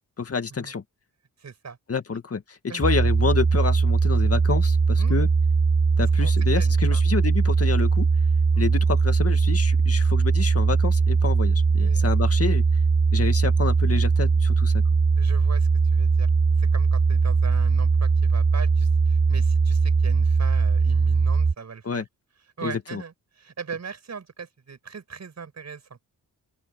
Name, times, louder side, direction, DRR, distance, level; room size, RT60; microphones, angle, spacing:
voice 1, 0.2-0.8 1.9-5.3 6.0-8.1 8.6-12.6 13.1-14.8 21.9-22.0 22.6-23.0, left 5 dB, 40° left, 2.0 m, -28 dB
voice 2, 1.4-1.8 2.7-2.8 5.0-5.2 6.0-7.0 8.5-8.7 11.8-12.0 15.2-16.3 16.6-22.0 22.6-26.0, right 5 dB, 50° right, 6.7 m, -40 dB
sound 1, 2.8-21.5, right 4 dB, 20° right, 1.1 m, -20 dB
open air
cardioid pair, 80°, 35 cm